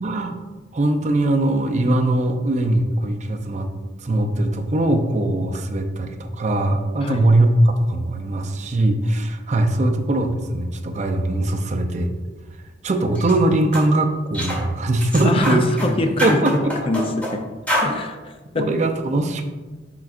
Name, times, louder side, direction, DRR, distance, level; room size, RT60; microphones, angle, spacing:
voice 1, 0.0-0.4 0.7-3.7 4.0-12.1 12.8-15.9 16.2-16.8 17.9-18.0 18.5-19.4, right 1 dB, 40° right, 5 dB, 0.5 m, -21 dB
sound 1, 13.1-13.4 13.7-13.9 14.3-14.6 15.0-15.9 16.2-17.3 17.7-17.9, equal, 10° left, 1.6 m, -25 dB
voice 2, 15.2-16.6 16.9-17.4 17.8-18.7, left 2 dB, 30° left, 6 dB, 0.4 m, -24 dB
10.0 x 3.8 x 2.4 m, 1.2 s
head